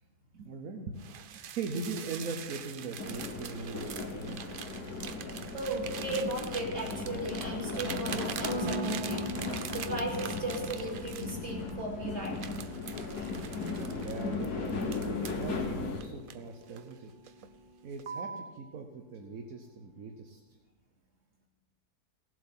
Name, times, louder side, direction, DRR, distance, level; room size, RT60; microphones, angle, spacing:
voice 1, 0.3-4.4 13.7-14.8 15.2-17.1 17.8-20.4, right 4 dB, 60° right, 4 dB, 1.3 m, -40 dB
sound 1, 1.0-11.8 12.2-15.5 16.0-16.9 17.3-17.5 18.0-18.6, right 7 dB, 90° right, 0.4 m, -43 dB
sound 2, 3.0-16.0, left 3 dB, 75° left, 2.0 m, -37 dB
voice 2, 5.5-12.7, right 1 dB, 40° right, -3 dB, 3.2 m, -36 dB
Piano, 8.4-18.8, right 2 dB, 15° right, 1.3 m, -45 dB
17.5 x 7.9 x 5.7 m, 1.2 s
omnidirectional pair, 1.7 m